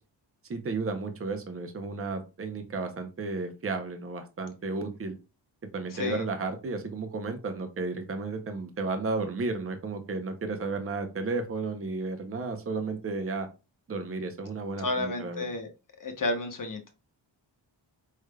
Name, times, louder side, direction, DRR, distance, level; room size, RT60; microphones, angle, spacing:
voice 1, 0.5-5.2 5.7-13.5 13.9-15.4, right 3 dB, 30° right, 6 dB, 0.6 m, -33 dB
voice 2, 5.9-6.3 14.8-15.7 16.0-16.9, left 2 dB, 45° left, 6 dB, 0.8 m, -31 dB
4.8 x 3.4 x 2.2 m, 0.29 s
wide cardioid pair, 160°, 46 cm